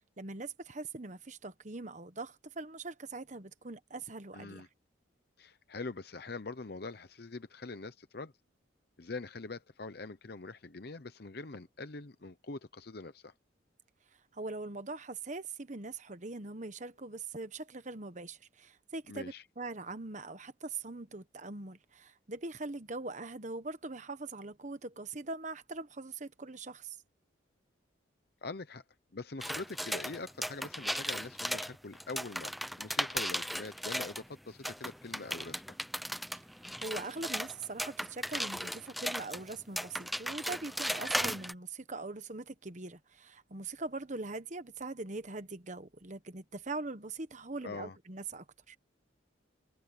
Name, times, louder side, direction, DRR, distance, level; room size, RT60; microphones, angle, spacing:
voice 1, 0.2-4.7 14.3-27.0 36.8-48.8, right 3 dB, 40° right, 1.1 m, -42 dB
voice 2, 4.3-4.7 5.4-8.3 9.0-13.3 19.1-19.4 28.4-28.8 29.1-35.8 47.6-48.0, left 3 dB, 55° left, 0.8 m, -43 dB
sound 1, 29.4-34.2 34.6-41.5, equal, ahead, 0.8 m, -36 dB
head